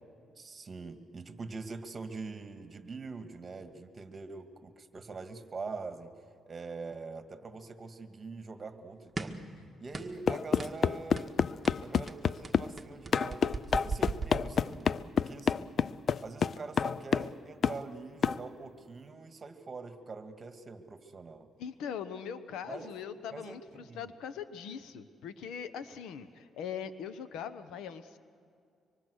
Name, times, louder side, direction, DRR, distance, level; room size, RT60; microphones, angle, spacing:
voice 1, 0.4-6.1 6.5-11.4 11.8-15.8 16.2-21.5 22.7-22.9 23.3-24.1, right 4 dB, 35° right, 8 dB, 2.0 m, -44 dB
sound 1, 9.2-9.5 9.9-10.3 10.6-10.8 11.2-11.4 11.6-15.0, right 3 dB, 20° right, 1.8 m, -38 dB
sound 2, 10.3-12.7 13.1-17.3 17.6-17.8 18.2-18.4, left 6 dB, 50° left, 0.5 m, -28 dB
voice 2, 21.6-28.2, left 7 dB, 85° left, 12 dB, 1.1 m, -41 dB
25.0 x 24.5 x 6.5 m, 2.4 s
cardioid pair, 90°, 0 cm